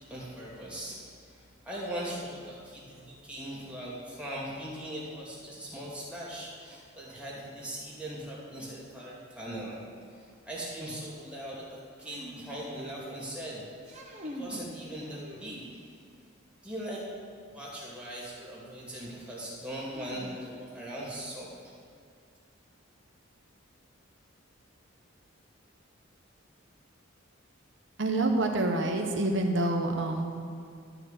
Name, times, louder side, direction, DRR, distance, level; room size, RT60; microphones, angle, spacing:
voice 1, 0.0-9.8 10.1-14.1 14.3-15.8 16.6-17.0 17.5-21.7, right 1 dB, 5° right, -6 dB, 2.4 m, -40 dB
sound 1, 12.0-13.2 13.8-14.7 15.1-16.0 18.0-18.1 19.9-20.8, equal, 35° right, 1.2 m, -44 dB
voice 2, 28.0-30.4, right 2 dB, 65° right, 4 dB, 1.1 m, -27 dB
12.5 x 4.5 x 8.3 m, 2.4 s
head